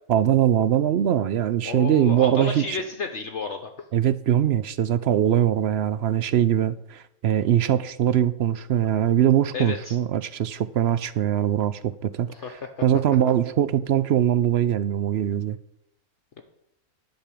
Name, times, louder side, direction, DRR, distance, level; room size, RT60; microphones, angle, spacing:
voice 1, 0.1-2.8 3.9-12.3 12.8-15.6, right 10 dB, 65° right, 0.6 m, -22 dB
voice 2, 1.6-3.7 9.5-10.0 12.3-12.8 16.4-16.5, left 4 dB, 55° left, 1.2 m, -32 dB
10.5 x 5.2 x 8.5 m
omnidirectional pair, 1.5 m